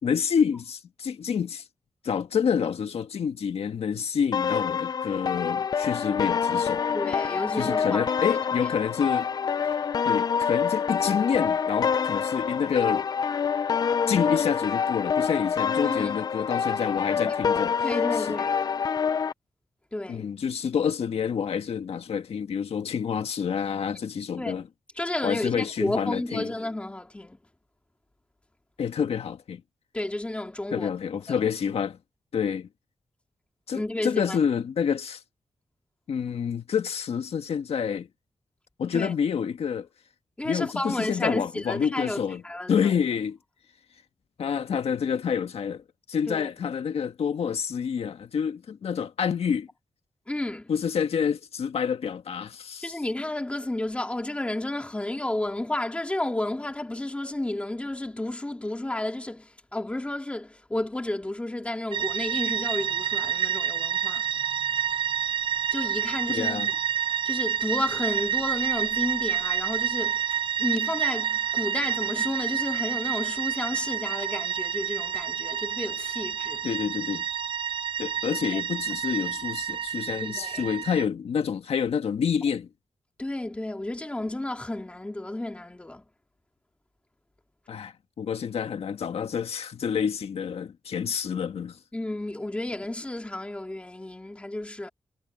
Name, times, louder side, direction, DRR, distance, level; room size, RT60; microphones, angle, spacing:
voice 1, 0.0-1.6 2.0-6.8 7.5-9.3 10.0-13.1 14.1-17.8 18.2-18.3 20.1-24.7 25.2-26.5 28.8-29.6 30.7-32.0 32.3-32.7 33.7-35.2 36.1-38.1 38.8-39.9 40.4-42.4 42.7-43.4 44.4-45.8 46.1-49.7 50.7-53.0 66.3-66.7 76.6-77.2 78.0-82.7 87.7-91.8, left 7 dB, 75° left, 1.6 m, -28 dB
sound 1, 4.3-19.3, left 6 dB, 40° left, 0.3 m, -26 dB
voice 2, 6.9-8.1 15.8-16.2 17.1-17.3 17.8-18.6 19.9-20.3 24.4-24.6 25.0-27.4 29.9-30.9 31.3-31.4 33.7-34.4 38.9-39.1 40.4-42.9 46.3-46.5 50.3-50.7 52.8-64.2 65.7-66.8 67.2-70.2 70.6-76.7 78.5-78.6 80.2-80.7 83.2-86.0 91.9-94.9, left 1 dB, 10° left, 2.3 m, -32 dB
sound 2, 61.9-81.1, right 9 dB, 55° right, 0.5 m, -29 dB
wide cardioid pair, 170°, 10 cm